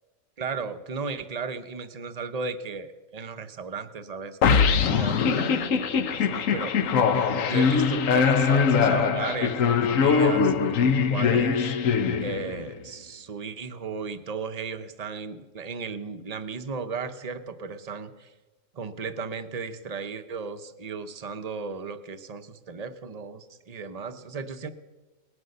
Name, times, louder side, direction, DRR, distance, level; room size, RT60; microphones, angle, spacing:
voice 1, 0.4-6.9 7.5-11.7 12.2-18.3 18.7-24.7, right 5 dB, 35° right, 9 dB, 0.8 m, -35 dB
sound 1, 4.4-12.7, left 6 dB, 75° left, 1.2 m, -22 dB
19.5 x 9.6 x 6.6 m, 1.2 s
omnidirectional pair, 1.4 m